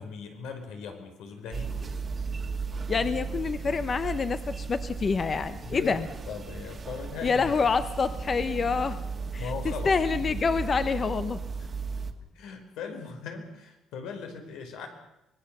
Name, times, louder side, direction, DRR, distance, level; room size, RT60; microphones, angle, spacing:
voice 1, 0.0-2.0 5.6-6.0 6.3-7.5 9.4-10.4 12.3-14.9, left 5 dB, 85° left, 5 dB, 4.9 m, -39 dB
sound 1, 1.5-12.1, right 4 dB, 25° right, 1.6 m, -35 dB
voice 2, 2.9-6.1 7.2-9.0 9.3-11.4, left 5 dB, 25° left, 11 dB, 0.8 m, -27 dB
25.0 x 20.5 x 6.8 m, 0.91 s
cardioid pair, 175°, 0 cm